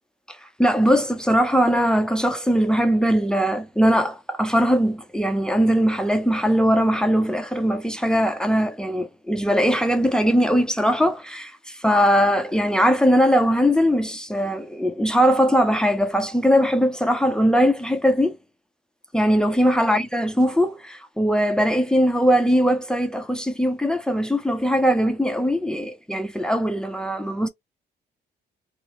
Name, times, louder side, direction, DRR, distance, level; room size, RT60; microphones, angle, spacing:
voice 1, 0.3-18.4 19.1-27.5, equal, 5° left, 0.5 m, -20 dB
2.9 x 2.1 x 3.0 m
cardioid pair, 95°, 18 cm